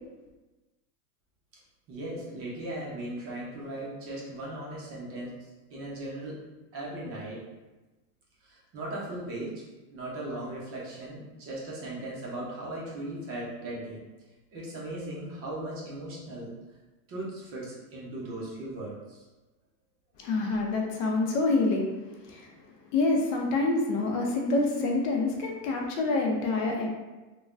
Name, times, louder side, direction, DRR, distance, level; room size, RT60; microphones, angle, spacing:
voice 1, 1.9-6.4 6.7-7.5 8.4-9.5 9.9-14.0 14.5-16.6 17.1-19.2, right 1 dB, 30° right, -5 dB, 0.7 m, -38 dB
voice 2, 20.2-21.9 22.2-22.5 22.9-26.9, left 3 dB, 55° left, 0 dB, 0.6 m, -27 dB
3.2 x 2.2 x 2.4 m, 1.1 s
supercardioid pair, 140°, 48 cm